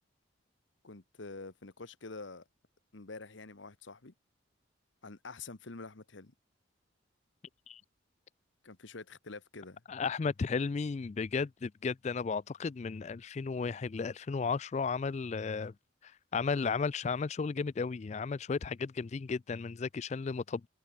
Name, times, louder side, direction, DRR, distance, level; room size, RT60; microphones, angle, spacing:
voice 1, 0.8-2.4 2.9-4.1 5.0-6.3 8.6-9.8, left 3 dB, 70° left, 1.3 m, -47 dB
voice 2, 9.9-15.7 16.0-20.7, left 5 dB, 35° left, 0.3 m, -34 dB
head